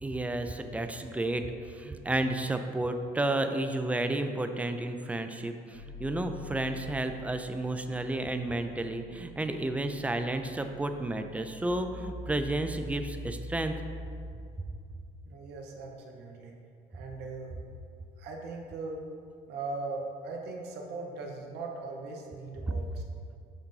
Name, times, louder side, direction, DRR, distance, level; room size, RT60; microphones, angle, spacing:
voice 1, 0.0-13.7, right 2 dB, 10° right, 7 dB, 0.3 m, -32 dB
sound 1, 5.7-14.3, equal, 90° left, 1.2 m, -44 dB
voice 2, 15.3-16.5 16.9-17.5 18.2-19.0 19.5-23.0, right 3 dB, 80° right, 1 dB, 0.8 m, -39 dB
7.1 x 2.6 x 5.4 m, 2.3 s
cardioid pair, 110°, 17 cm